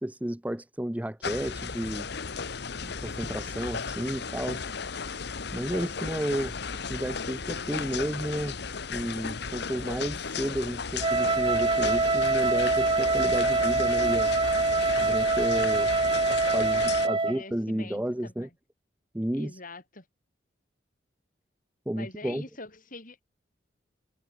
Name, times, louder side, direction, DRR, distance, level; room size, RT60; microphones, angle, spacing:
voice 1, 0.0-2.1 2.8-4.7 5.5-6.6 6.9-8.6 8.9-14.4 15.0-15.9 16.3-18.5 19.1-19.5 21.9-22.4, right 1 dB, 10° right, 0.6 m, -32 dB
sound 1, 1.2-17.1, left 5 dB, 60° left, 1.1 m, -35 dB
Wind instrument woodwind instrument, 11.0-17.4, right 3 dB, 30° right, 1.7 m, -24 dB
voice 2, 17.0-18.5 19.3-20.0 21.9-23.2, left 2 dB, 45° left, 7.6 m, -44 dB
head